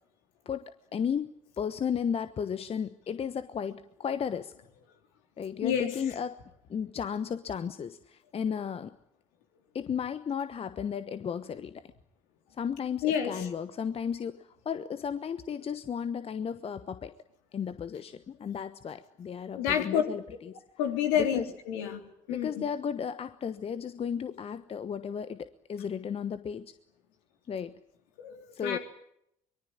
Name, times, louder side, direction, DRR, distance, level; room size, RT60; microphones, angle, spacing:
voice 1, 0.4-4.5 5.4-6.4 6.7-8.9 9.7-11.8 12.6-17.1 17.5-20.5 21.2-21.5 22.3-26.7 27.5-27.8 28.5-28.8, left 7 dB, 35° left, 12 dB, 1.1 m, -34 dB
voice 2, 5.6-6.0 13.0-13.5 19.5-20.0 20.8-22.0 22.3-22.5 28.2-28.8, left 9 dB, 65° left, 4 dB, 3.4 m, -29 dB
24.5 x 22.5 x 8.8 m, 0.77 s
figure-of-eight pair, 55°, 17 cm